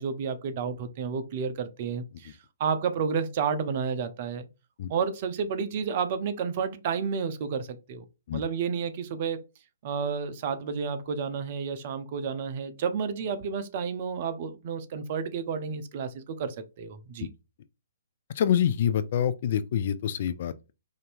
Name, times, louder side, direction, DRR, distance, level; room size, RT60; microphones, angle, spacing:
voice 1, 0.0-4.5 4.9-8.0 8.3-9.4 9.8-17.3, right 6 dB, 45° right, 0.7 m, -31 dB
voice 2, 18.4-20.7, left 9 dB, 50° left, 0.4 m, -26 dB
5.0 x 2.7 x 2.6 m
figure-of-eight pair, 125°, 0 cm